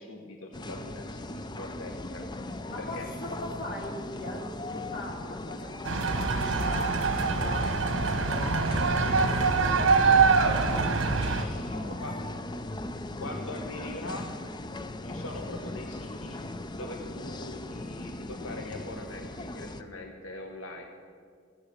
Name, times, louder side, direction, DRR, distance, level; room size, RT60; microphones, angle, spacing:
voice 1, 0.0-2.2 2.8-3.1 11.1-12.3 13.2-14.3 15.0-16.4 16.7-20.8, left 1 dB, 90° left, 3 dB, 1.3 m, -42 dB
sound 1, 0.5-19.8, left 2 dB, 20° left, 0.5 m, -38 dB
voice 2, 2.7-12.0 16.9-17.1, left 2 dB, 45° left, -2 dB, 2.8 m, -41 dB
sound 2, 5.8-11.4, right 4 dB, 70° right, 1.1 m, -24 dB
15.5 x 9.1 x 6.6 m, 2.1 s
head